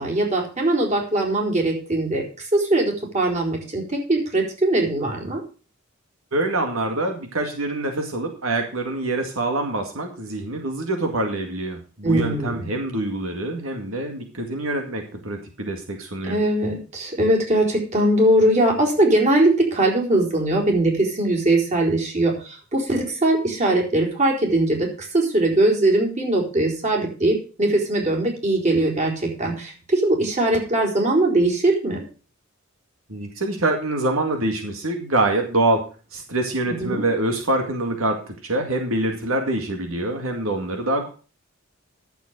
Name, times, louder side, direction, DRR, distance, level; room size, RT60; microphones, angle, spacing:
voice 1, 0.0-2.2 2.5-5.4 12.0-12.6 16.2-32.0 36.7-37.0, right 1 dB, 35° right, 1 dB, 3.9 m, -21 dB
voice 2, 6.3-16.4 33.1-41.1, right 2 dB, 80° right, 4 dB, 2.1 m, -25 dB
11.5 x 7.2 x 6.5 m, 0.36 s
head